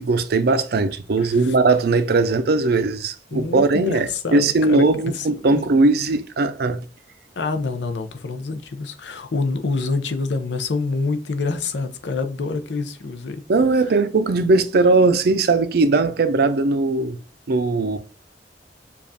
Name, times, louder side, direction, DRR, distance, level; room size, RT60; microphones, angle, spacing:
voice 1, 0.0-6.8 13.5-17.2 17.5-18.0, right 3 dB, 60° right, 0.5 m, -19 dB
voice 2, 1.2-1.5 3.3-5.6 7.4-13.4, left 3 dB, 80° left, 0.6 m, -27 dB
6.9 x 2.4 x 2.7 m
head